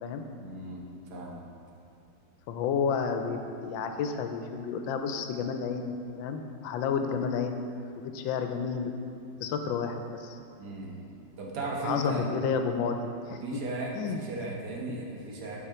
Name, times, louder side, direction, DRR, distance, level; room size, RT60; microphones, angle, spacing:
voice 1, 0.4-1.4 10.6-12.2 13.4-15.6, right 2 dB, 60° right, -2 dB, 1.6 m, -37 dB
voice 2, 2.5-7.6 8.0-8.9 9.4-10.4 11.8-13.6 13.9-14.2, left 6 dB, 90° left, 6 dB, 1.3 m, -31 dB
8.6 x 5.2 x 4.3 m, 2.5 s
omnidirectional pair, 2.1 m